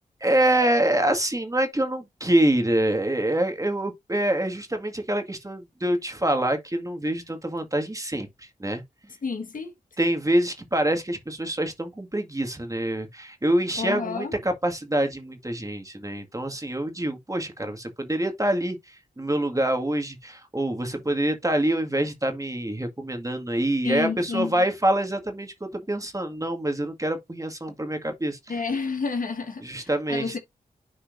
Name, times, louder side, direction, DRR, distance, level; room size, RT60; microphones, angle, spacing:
voice 1, 0.2-8.8 10.0-28.4 29.6-30.4, right 1 dB, 20° right, 2.0 m, -26 dB
voice 2, 9.2-10.1 13.8-14.3 23.8-24.5 28.5-30.4, left 4 dB, 60° left, 1.6 m, -30 dB
10.5 x 4.3 x 2.7 m
cardioid pair, 40°, 16 cm